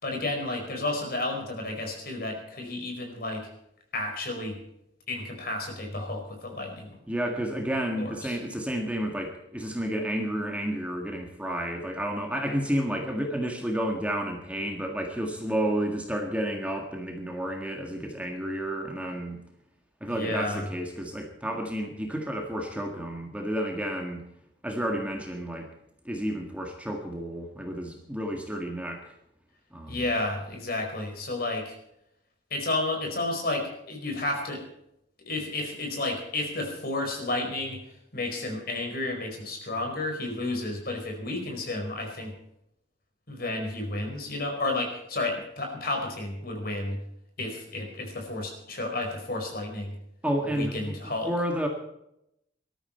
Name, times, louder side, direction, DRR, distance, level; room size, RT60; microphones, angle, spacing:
voice 1, 0.0-3.5 3.9-4.6 5.1-7.0 8.0-8.4 20.1-20.7 29.9-31.8 32.5-34.6 35.3-37.8 38.1-42.3 43.3-47.0 47.4-50.0 50.4-51.3, left 2 dB, 50° left, 3 dB, 4.8 m, -31 dB
voice 2, 7.1-19.4 20.0-24.2 24.6-25.7 26.1-29.1 29.7-30.0 50.2-51.7, equal, 5° right, 2 dB, 1.8 m, -31 dB
19.5 x 13.0 x 4.5 m, 0.80 s
head